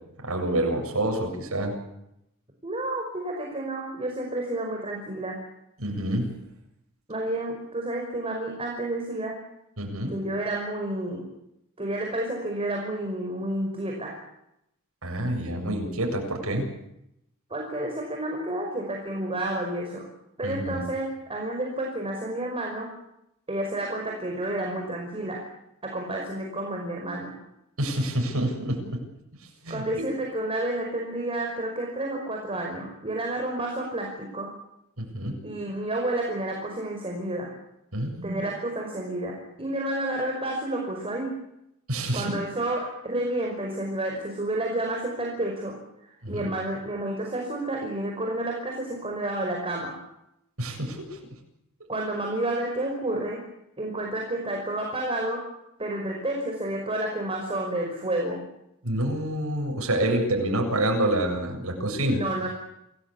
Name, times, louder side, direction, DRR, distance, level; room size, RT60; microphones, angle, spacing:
voice 1, 0.2-1.7 5.8-6.3 9.8-10.1 15.0-16.7 20.4-20.8 27.8-29.0 29.6-30.0 35.0-35.4 37.9-38.4 41.9-42.4 46.2-46.5 50.6-51.2 58.8-62.2, right 1 dB, 80° right, 3 dB, 7.8 m, -27 dB
voice 2, 2.6-5.4 7.1-9.4 10.1-11.3 11.8-14.2 17.5-20.1 20.4-22.9 23.5-25.4 25.8-27.3 29.7-34.5 35.4-37.5 38.2-41.3 42.1-45.8 46.0-50.0 51.9-53.4 53.8-55.4 55.8-58.4 62.2-62.5, right 1 dB, 25° right, 0 dB, 5.4 m, -30 dB
28.0 x 18.5 x 8.6 m, 0.82 s
head